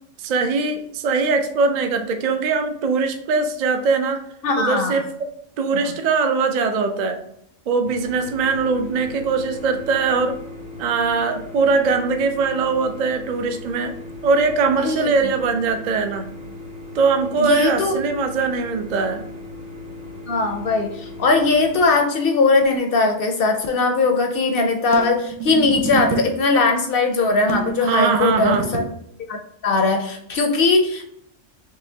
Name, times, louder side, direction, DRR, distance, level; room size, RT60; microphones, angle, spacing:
voice 1, 0.2-4.2 4.6-5.3 5.6-7.2 7.7-10.4 10.8-13.9 14.2-16.3 16.9-19.3 27.8-28.7, right 4 dB, 55° right, 6 dB, 0.5 m, -21 dB
voice 2, 4.4-5.0 14.8-15.1 17.4-18.0 20.3-28.9 29.3-29.4 29.6-31.1, left 3 dB, 60° left, 4 dB, 0.6 m, -19 dB
sound 1, 7.9-21.8, left 2 dB, 35° right, 0.9 m, -37 dB
sound 2, 24.9-26.4 27.5-29.0, right 5 dB, 85° right, 1.1 m, -28 dB
4.7 x 2.9 x 2.7 m, 0.72 s
omnidirectional pair, 1.3 m